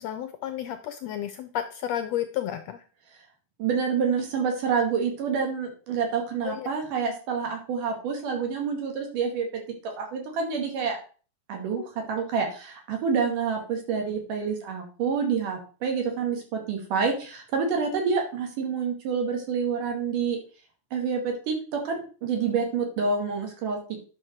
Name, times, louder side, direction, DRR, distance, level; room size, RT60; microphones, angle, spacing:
voice 1, 0.0-2.8 6.4-6.7 11.8-11.9, left 11 dB, 80° left, 10 dB, 1.5 m, -32 dB
voice 2, 3.6-9.5 10.0-11.0 11.5-20.4 20.9-24.0, right 5 dB, 75° right, 2 dB, 3.9 m, -28 dB
10.5 x 6.5 x 4.5 m, 0.38 s
omnidirectional pair, 3.7 m